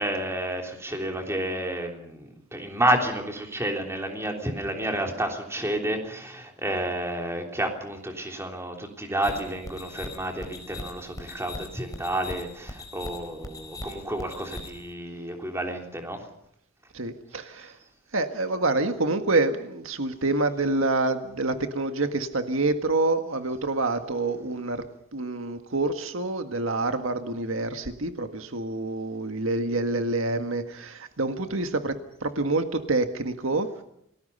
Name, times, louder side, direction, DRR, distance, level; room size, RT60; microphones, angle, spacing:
voice 1, 0.0-16.2, right 1 dB, 15° right, 2 dB, 3.4 m, -30 dB
sound 1, 9.2-14.9, left 2 dB, 20° left, 4.3 m, -40 dB
voice 2, 16.9-17.7 18.1-24.8 25.1-33.7, right 2 dB, 80° right, 7 dB, 1.7 m, -27 dB
28.5 x 19.5 x 5.6 m, 0.74 s
head